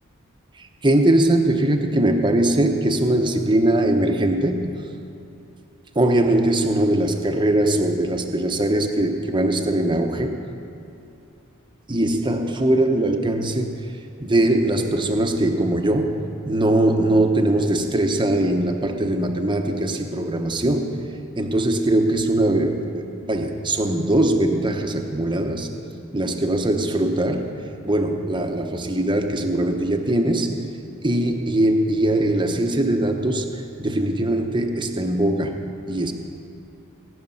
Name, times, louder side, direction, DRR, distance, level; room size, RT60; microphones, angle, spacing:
voice 1, 0.6-4.8 5.9-10.4 11.9-13.8 14.2-16.2 16.5-21.0 21.4-25.7 26.1-30.6 31.0-35.6 35.9-36.1, right 1 dB, 20° right, 4 dB, 1.0 m, -21 dB
19.0 x 6.8 x 9.7 m, 2.7 s
head